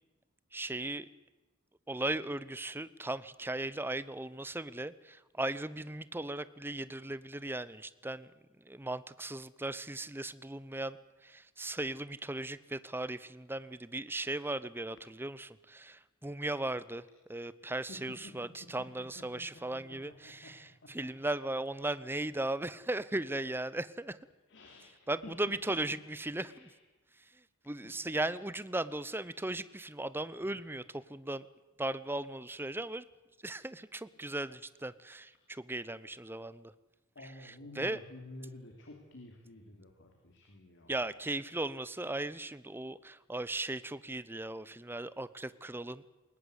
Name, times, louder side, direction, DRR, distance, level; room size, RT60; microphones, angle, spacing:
voice 1, 0.5-1.1 1.9-8.3 8.6-11.0 11.2-17.0 17.3-24.2 25.1-26.7 27.7-31.4 31.8-33.1 33.4-36.7 37.4-38.0 40.9-46.0, right 2 dB, 10° right, 16 dB, 0.8 m, -37 dB
voice 2, 17.6-20.5 20.8-20.9 24.5-25.3 26.3-26.8 27.8-28.1 30.4-30.8 37.1-40.9, left 2 dB, 60° left, 3 dB, 3.1 m, -52 dB
21.5 x 20.0 x 8.1 m, 1.1 s
head